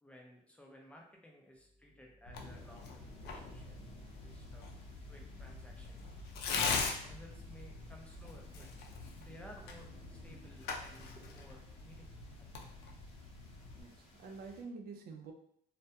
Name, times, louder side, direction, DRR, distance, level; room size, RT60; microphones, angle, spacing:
voice 1, 0.0-3.8 4.2-4.7 5.1-6.1 7.0-8.7 9.2-12.7, left 1 dB, 5° left, -1 dB, 0.5 m, -57 dB
sound 1, 1.5-10.8 11.2-11.4, left 2 dB, 25° right, 0.8 m, -57 dB
Tearing, 2.3-13.8, left 4 dB, 75° left, 0.4 m, -42 dB
sound 2, 2.3-14.6, left 2 dB, 35° left, 0.8 m, -58 dB
voice 2, 13.7-15.3, right 4 dB, 65° right, 3 dB, 0.5 m, -48 dB
2.2 x 2.1 x 2.7 m, 0.67 s
cardioid pair, 110°, 17 cm